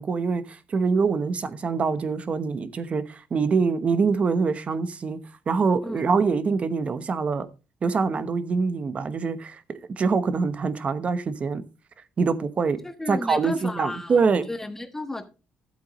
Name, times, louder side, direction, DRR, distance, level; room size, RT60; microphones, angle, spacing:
voice 1, 0.0-5.2 5.5-7.5 7.8-11.6 12.2-12.8 13.1-14.5, right 5 dB, 40° right, 1.0 m, -24 dB
voice 2, 12.8-15.2, left 1 dB, 10° left, 1.3 m, -33 dB
13.0 x 8.0 x 3.1 m
cardioid pair, 120°, 3 cm